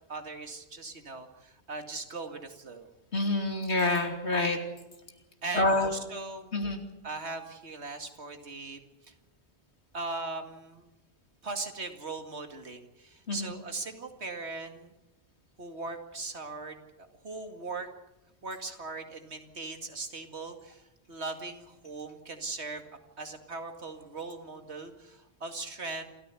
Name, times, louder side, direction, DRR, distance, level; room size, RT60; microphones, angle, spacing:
voice 1, 0.1-2.9 5.4-6.5 7.0-9.1 9.9-10.9 11.4-14.9 15.6-17.9 18.4-22.9 23.2-26.1, right 3 dB, 80° right, 6 dB, 2.5 m, -39 dB
voice 2, 3.1-4.6 5.5-5.9 6.5-6.8 13.3-13.5, left 2 dB, 85° left, 5 dB, 3.1 m, -27 dB
28.0 x 14.0 x 8.3 m, 1.0 s
omnidirectional pair, 1.1 m